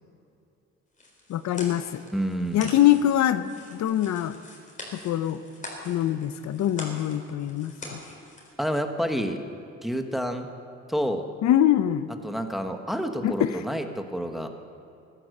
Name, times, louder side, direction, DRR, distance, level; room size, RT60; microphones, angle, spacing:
sound 1, 0.9-8.5, left 1 dB, 25° left, 4.0 m, -44 dB
voice 1, 1.3-2.0 2.5-4.4 4.9-5.4 5.8-7.7 11.4-12.1 13.2-13.6, left 12 dB, 65° left, 13 dB, 0.6 m, -23 dB
voice 2, 2.1-2.7 8.6-9.4 9.8-10.5 10.9-11.3 12.2-14.5, equal, ahead, 5 dB, 1.3 m, -29 dB
15.5 x 11.5 x 6.5 m, 2.7 s
cardioid pair, 90°, 30 cm